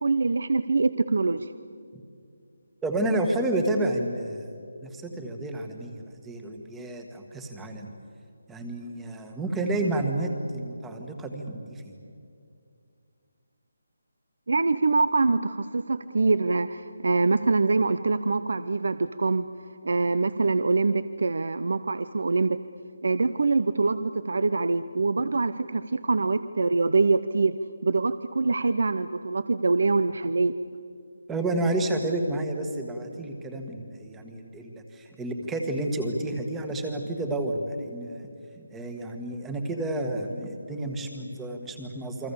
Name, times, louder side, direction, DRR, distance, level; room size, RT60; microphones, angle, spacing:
voice 1, 0.0-1.5 14.5-19.5 19.8-22.6 23.0-27.6 27.8-30.5, right 3 dB, 65° right, 13 dB, 0.7 m, -24 dB
voice 2, 2.8-4.5 4.8-7.9 8.5-11.9 31.3-38.3 38.6-42.3, right 1 dB, 5° right, 4 dB, 1.5 m, -30 dB
28.5 x 23.5 x 7.1 m, 2.4 s
hypercardioid pair, 175°, 0 cm